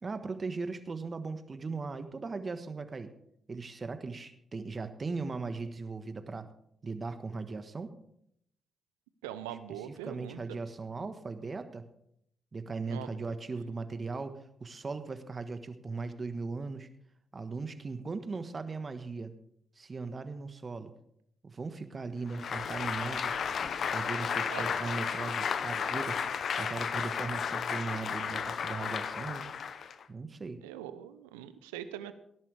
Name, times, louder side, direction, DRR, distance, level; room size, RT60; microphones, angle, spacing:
voice 1, 0.0-3.1 3.5-6.5 6.8-8.0 9.7-11.8 12.5-16.9 17.3-19.3 19.8-20.9 21.4-23.4 23.9-26.2 26.5-29.5 30.1-30.6, right 4 dB, 45° right, 10 dB, 1.4 m, -38 dB
voice 2, 9.2-10.6 12.9-13.2 24.5-24.7 30.6-32.1, right 11 dB, 90° right, 12 dB, 0.6 m, -42 dB
Applause, 22.3-30.0, left 6 dB, 60° left, 0.7 m, -33 dB
18.5 x 11.0 x 3.4 m, 0.72 s
hypercardioid pair, 40°, 0 cm